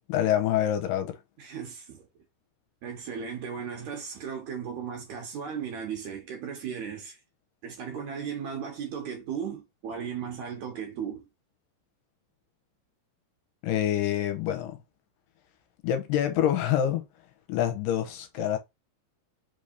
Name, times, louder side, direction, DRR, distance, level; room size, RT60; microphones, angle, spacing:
voice 1, 0.1-1.2 13.6-14.8 15.8-17.1 17.5-18.6, left 11 dB, 85° left, 2.3 m, -26 dB
voice 2, 1.4-2.1 2.8-7.2 7.6-11.3, right 7 dB, 70° right, 2.0 m, -36 dB
5.2 x 3.3 x 2.6 m
omnidirectional pair, 4.1 m